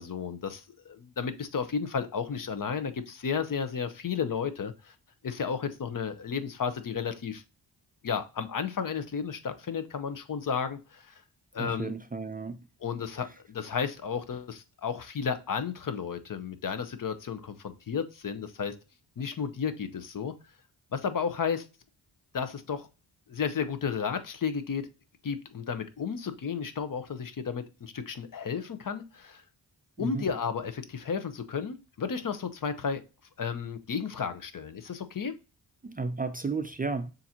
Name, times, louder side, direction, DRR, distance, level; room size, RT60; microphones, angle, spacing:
voice 1, 0.0-4.9 5.2-7.4 8.0-11.1 11.5-11.9 12.8-18.7 19.2-20.3 20.9-21.7 22.3-22.9 23.3-24.9 25.2-29.4 30.0-33.0 33.4-35.3, left 6 dB, 50° left, 0.7 m, -33 dB
voice 2, 11.6-12.6 30.0-30.3 35.8-37.1, right 4 dB, 20° right, 0.4 m, -33 dB
6.9 x 2.6 x 2.8 m
cardioid pair, 75°, 43 cm